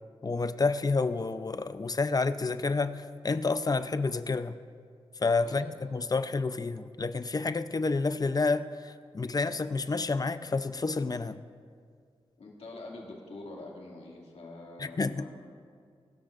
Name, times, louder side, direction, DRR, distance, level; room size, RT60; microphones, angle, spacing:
voice 1, 0.2-4.6 5.2-5.7 5.9-11.4 14.8-15.3, left 3 dB, 40° left, 12 dB, 0.5 m, -29 dB
voice 2, 12.4-15.4, left 2 dB, 80° left, -3 dB, 2.2 m, -45 dB
22.5 x 13.0 x 2.5 m, 2.1 s
wide cardioid pair, 70°, 10 cm